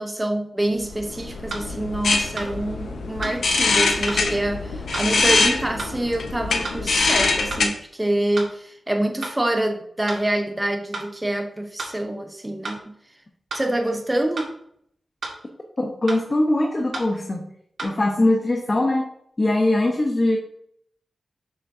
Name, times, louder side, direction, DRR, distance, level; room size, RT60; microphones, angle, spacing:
voice 1, 0.0-12.9 13.5-14.5, right 1 dB, 15° right, 4 dB, 0.8 m, -26 dB
sound 1, 0.8-7.7, left 3 dB, 85° left, 1.1 m, -23 dB
sound 2, 1.5-1.7 2.4-2.5 3.2-3.4 4.1-4.2 4.9-5.1 5.8-5.9 6.6-6.8 7.5-7.7 8.4-8.5 9.2-9.4 10.1-10.2 10.9-11.1 11.8-12.0 12.6-12.8 13.5-13.7 14.4-14.5 15.2-15.4 16.1-16.2 16.9-17.1 17.8-17.9, right 3 dB, 75° right, 1.9 m, -32 dB
voice 2, 15.8-17.4 17.8-19.0 19.4-20.4, left 1 dB, 30° left, 1 dB, 0.9 m, -21 dB
7.1 x 6.4 x 2.7 m, 0.68 s
wide cardioid pair, 105°, 0 cm